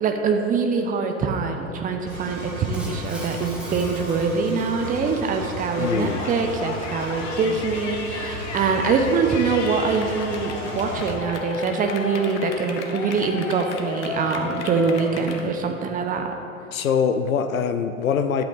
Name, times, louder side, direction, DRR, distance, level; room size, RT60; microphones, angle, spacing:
voice 1, 0.0-16.4, right 4 dB, 20° right, 5 dB, 0.9 m, -24 dB
Engine, 2.1-11.1, right 1 dB, 90° right, 1.9 m, -35 dB
Shatter, 2.7-5.1, equal, ahead, 1.5 m, -42 dB
Yell, 5.7-15.4, left 4 dB, 55° left, 1.2 m, -34 dB
voice 2, 5.8-6.2 16.7-18.4, left 6 dB, 75° left, 9 dB, 0.7 m, -23 dB
11.5 x 8.0 x 4.1 m, 2.6 s
figure-of-eight pair, 95°, 42 cm